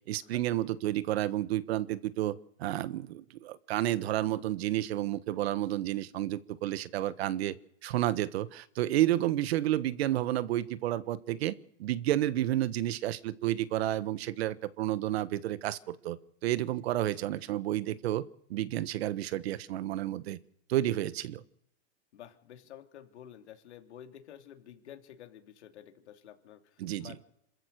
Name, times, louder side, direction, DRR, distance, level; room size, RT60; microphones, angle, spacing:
voice 1, 0.1-7.6 7.8-18.2 18.5-20.4 20.7-21.4 26.8-27.1, right 14 dB, 70° right, 15 dB, 1.3 m, -31 dB
voice 2, 22.1-27.2, left 10 dB, 90° left, 5 dB, 3.0 m, -51 dB
27.0 x 14.5 x 6.7 m, 0.78 s
supercardioid pair, 155°, 33 cm